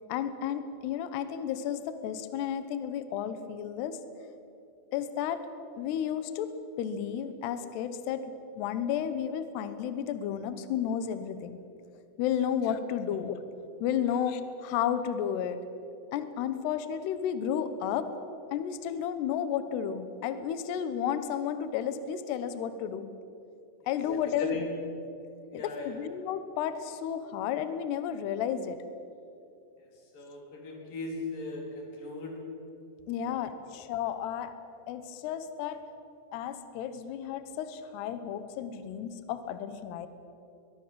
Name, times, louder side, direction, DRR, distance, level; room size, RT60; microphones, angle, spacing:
voice 1, 0.1-4.0 4.9-5.4 5.8-6.5 6.8-11.6 12.2-13.4 13.8-15.6 16.1-18.1 18.5-23.1 23.9-24.7 25.5-28.8 33.1-34.5 34.9-35.8 36.3-40.1, left 9 dB, 70° left, 11 dB, 3.0 m, -32 dB
voice 2, 24.4-24.8 25.5-25.9 30.1-32.3 33.3-33.4, left 3 dB, 50° left, 1 dB, 5.1 m, -38 dB
22.0 x 21.5 x 7.6 m, 2.6 s
omnidirectional pair, 5.3 m